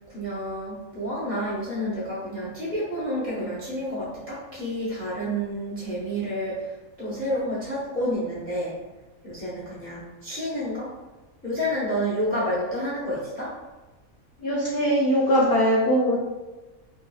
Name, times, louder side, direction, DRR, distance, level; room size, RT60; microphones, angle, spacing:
voice 1, 0.1-6.7 7.0-8.7 9.2-10.9 11.4-13.6, equal, 20° left, -7 dB, 0.4 m, -29 dB
voice 2, 14.4-16.4, equal, 65° left, -5 dB, 0.6 m, -21 dB
2.8 x 2.4 x 2.3 m, 1.1 s
omnidirectional pair, 1.5 m